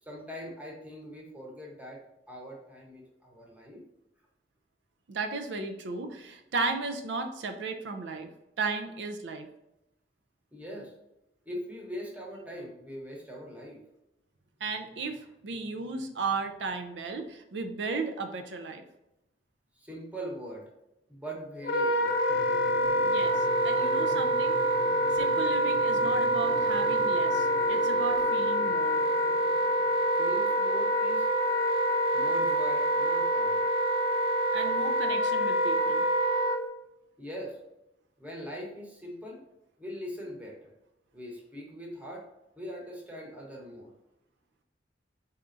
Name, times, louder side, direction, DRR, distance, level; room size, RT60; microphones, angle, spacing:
voice 1, 0.0-2.0 2.3-3.8 10.5-10.9 11.5-13.8 19.8-20.7 21.1-22.2 23.0-23.2 30.2-31.3 32.1-33.6 37.2-37.6 38.2-39.4 39.8-40.7 41.1-42.3 42.5-43.9, equal, 10° right, -2 dB, 1.0 m, -41 dB
voice 2, 5.1-8.3 8.6-9.5 14.6-18.8 23.0-24.6 25.2-29.0 34.5-36.0, right 4 dB, 80° right, 5 dB, 0.5 m, -35 dB
Wind instrument woodwind instrument, 21.6-36.6, right 1 dB, 55° left, 0.5 m, -26 dB
sound 1, 22.3-30.5, equal, 20° left, 1.0 m, -46 dB
4.2 x 3.6 x 2.5 m, 0.88 s
head